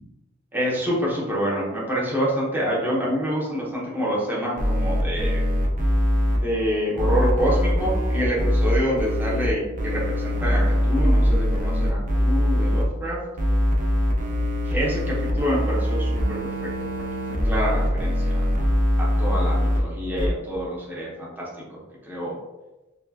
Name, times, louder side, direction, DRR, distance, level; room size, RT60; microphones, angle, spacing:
voice 1, 0.5-5.4 6.3-13.2 14.6-16.7 17.4-18.3 19.0-21.8 22.1-22.4, equal, 10° right, -6 dB, 0.9 m, -27 dB
sound 1, 4.6-6.4 7.0-9.5 9.8-12.8 13.4-19.8 20.2-20.3, equal, 40° right, 0.6 m, -22 dB
4.3 x 2.4 x 2.8 m, 1.0 s
head